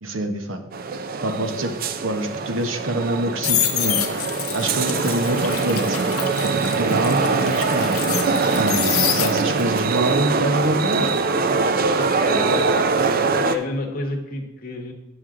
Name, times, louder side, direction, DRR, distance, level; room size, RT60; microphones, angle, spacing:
voice 1, 0.0-0.7 1.2-1.7 2.0-4.0 4.5-6.0 6.4-7.9 8.6-11.1, right 1 dB, 60° right, 7 dB, 0.9 m, -25 dB
sound 1, 0.7-13.6, right 4 dB, 40° right, 0.4 m, -23 dB
sound 2, 3.0-9.7 10.1-13.0 13.2-13.6, left 10 dB, 75° left, 0.9 m, -27 dB
voice 2, 12.0-12.6 13.3-14.9, left 2 dB, 40° left, 1 dB, 1.0 m, -30 dB
9.1 x 6.3 x 3.7 m, 1.1 s
head